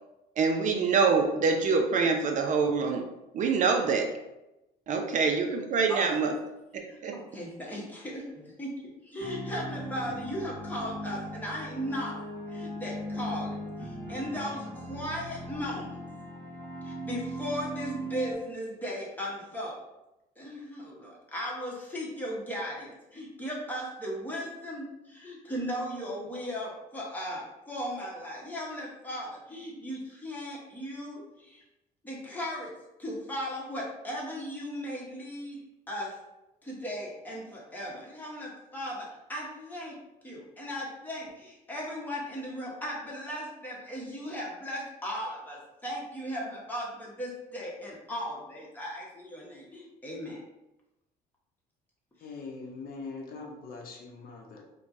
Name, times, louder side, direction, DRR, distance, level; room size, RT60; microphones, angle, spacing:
voice 1, 0.4-3.0 3.3-4.1 4.9-6.3 6.7-7.2, right 5 dB, 50° right, 3 dB, 0.4 m, -25 dB
voice 2, 5.9-6.2 6.9-16.0 16.8-19.8 20.4-31.6 32.0-36.2 36.6-40.0 40.2-50.4, equal, 10° left, -4 dB, 1.0 m, -37 dB
sound 1, 9.2-18.3, equal, 30° right, 1.4 m, -38 dB
voice 3, 52.2-54.6, left 4 dB, 60° left, 0 dB, 0.7 m, -42 dB
4.2 x 2.2 x 2.6 m, 0.94 s
cardioid pair, 110°, 17 cm